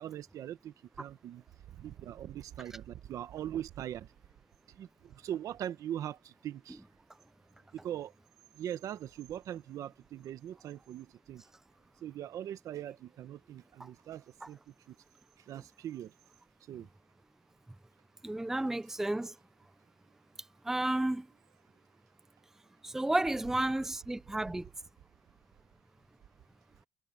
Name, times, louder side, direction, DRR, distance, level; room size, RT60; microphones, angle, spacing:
voice 1, 0.0-1.4 1.7-4.1 4.7-6.8 7.7-8.1 8.5-11.4 12.0-15.0 15.4-16.1 16.7-16.9, right 11 dB, 70° right, 1.2 m, -41 dB
voice 2, 18.2-19.3 20.6-21.3 22.8-24.7, right 1 dB, 5° right, 0.5 m, -32 dB
cardioid pair, 105°, 6 cm